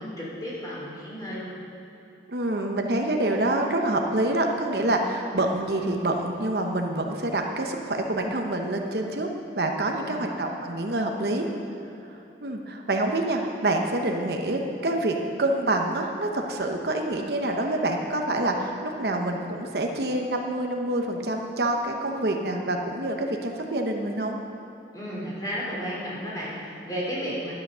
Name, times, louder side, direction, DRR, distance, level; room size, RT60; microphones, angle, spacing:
voice 1, 0.0-1.5 9.9-10.2 24.9-27.5, equal, 20° left, -6 dB, 3.1 m, -33 dB
voice 2, 2.3-9.3 9.6-11.5 12.1-24.4 27.2-27.3, right 1 dB, 65° right, 2 dB, 0.9 m, -27 dB
11.5 x 8.7 x 6.3 m, 2.9 s
head